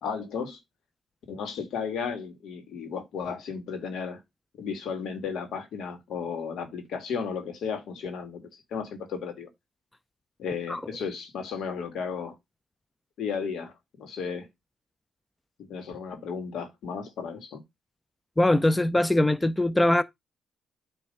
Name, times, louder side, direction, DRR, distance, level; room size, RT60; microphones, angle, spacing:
voice 1, 0.0-0.6 1.3-4.2 4.6-9.5 10.4-12.4 13.2-14.5 15.6-17.6, left 6 dB, 75° left, 2.1 m, -34 dB
voice 2, 18.4-20.0, left 1 dB, 10° left, 0.5 m, -22 dB
9.2 x 3.3 x 5.4 m
cardioid pair, 90°, 0 cm